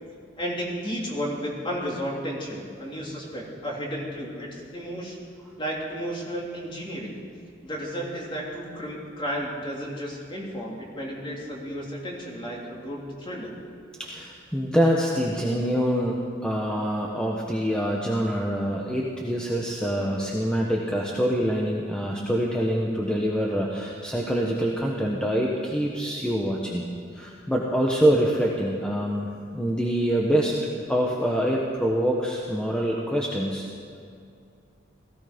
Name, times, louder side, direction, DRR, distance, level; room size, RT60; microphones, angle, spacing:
voice 1, 0.4-5.2 5.6-7.2 7.6-13.5, equal, 25° left, -2 dB, 3.2 m, -33 dB
voice 2, 14.0-26.8 27.1-30.6 30.9-33.6, equal, 5° left, -2 dB, 1.2 m, -25 dB
17.5 x 15.5 x 5.2 m, 2.4 s
head